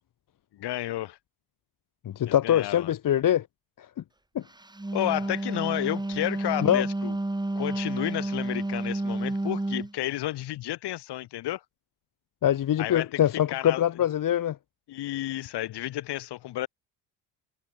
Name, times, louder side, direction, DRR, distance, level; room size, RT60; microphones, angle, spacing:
voice 1, 0.5-1.2 2.3-2.9 4.9-7.2 7.5-11.6 12.8-13.8 14.9-16.7, left 14 dB, 65° left, 4.2 m, -32 dB
voice 2, 2.0-3.5 3.8-3.9 4.3-4.4 6.6-6.8 12.4-14.6, left 11 dB, 50° left, 1.4 m, -23 dB
Wind instrument woodwind instrument, 4.6-9.9, right 2 dB, 10° right, 3.5 m, -30 dB
supercardioid pair, 70°, 43 cm